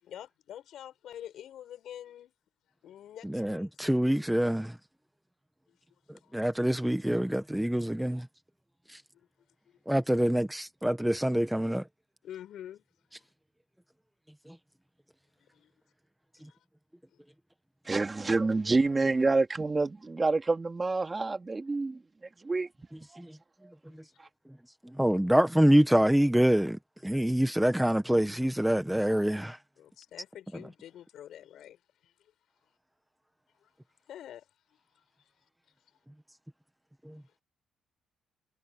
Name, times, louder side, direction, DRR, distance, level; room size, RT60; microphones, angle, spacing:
voice 1, 0.0-2.3 2.8-3.7 5.7-5.8 6.2-6.4 9.1-9.3 9.7-9.8 12.2-12.8 15.4-15.7 16.4-16.6 17.1-17.2 23.9-24.1 29.8-32.3 33.6-33.7 34.1-34.4 34.7-34.8 35.2-35.3, left 11 dB, 75° left, 7.4 m, -47 dB
voice 2, 3.2-4.8 6.3-8.3 8.9-9.0 9.9-11.8 14.5-14.6 23.2-23.3 24.8-29.6 37.1-37.2, right 1 dB, 5° right, 1.3 m, -26 dB
voice 3, 17.8-22.0 22.4-22.7 23.1-23.2 23.6-23.7 24.2-24.3, right 3 dB, 25° right, 2.7 m, -28 dB
cardioid pair, 90°, 0 cm